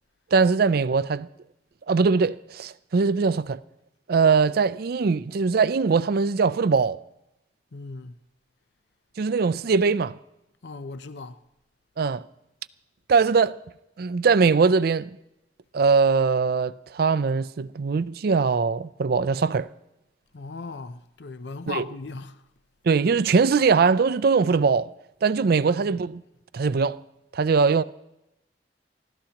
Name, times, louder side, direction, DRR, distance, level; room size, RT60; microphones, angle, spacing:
voice 1, 0.3-1.3 1.9-3.6 4.1-7.0 9.2-10.2 12.0-12.2 13.1-13.6 14.0-15.2 15.7-19.7 21.7-21.8 22.9-24.9 25.2-26.2 26.5-27.0 27.3-27.8, right 5 dB, 60° right, 0.4 m, -21 dB
voice 2, 7.7-8.2 10.6-11.4 20.3-22.4 25.4-25.6, left 3 dB, 70° left, 0.6 m, -37 dB
28.5 x 13.0 x 2.9 m
head